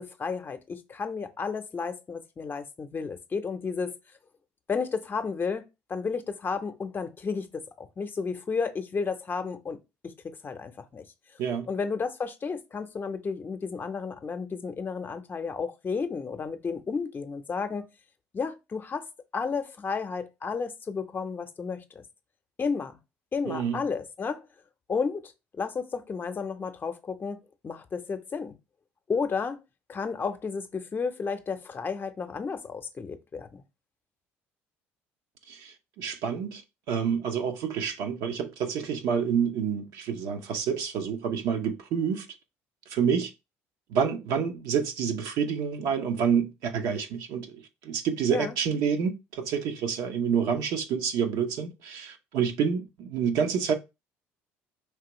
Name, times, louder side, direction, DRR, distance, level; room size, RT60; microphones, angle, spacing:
voice 1, 0.0-4.0 4.7-9.8 10.0-11.0 11.7-17.9 18.3-19.1 19.3-22.0 22.6-23.0 23.3-24.5 24.9-28.6 29.1-29.6 29.9-33.6 48.3-48.6, left 5 dB, 35° left, 0.7 m, -32 dB
voice 2, 23.5-23.8 35.5-36.6 36.9-42.3 42.9-43.3 43.9-53.7, right 7 dB, 70° right, 0.8 m, -28 dB
4.7 x 3.0 x 3.0 m
hypercardioid pair, 70°, 6 cm